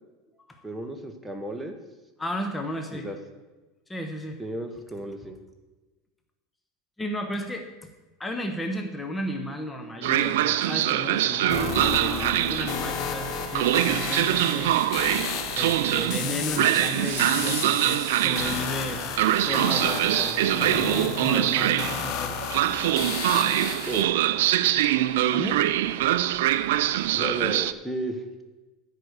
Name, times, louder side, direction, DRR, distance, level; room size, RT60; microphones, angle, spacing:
voice 1, 0.6-1.7 2.9-3.2 4.4-5.4 23.9-24.1 27.1-28.2, right 1 dB, 5° right, 3 dB, 1.1 m, -33 dB
voice 2, 2.2-3.1 3.9-4.4 7.0-7.7 8.2-14.8 15.6-19.1 19.4-22.4 25.3-25.7, left 1 dB, 10° left, 4 dB, 1.1 m, -34 dB
Train, 10.0-27.7, right 13 dB, 80° right, 0.4 m, -24 dB
sound 1, 11.5-24.0, left 8 dB, 55° left, 0.9 m, -33 dB
10.0 x 4.9 x 8.1 m, 1.2 s
supercardioid pair, 105°, 0 cm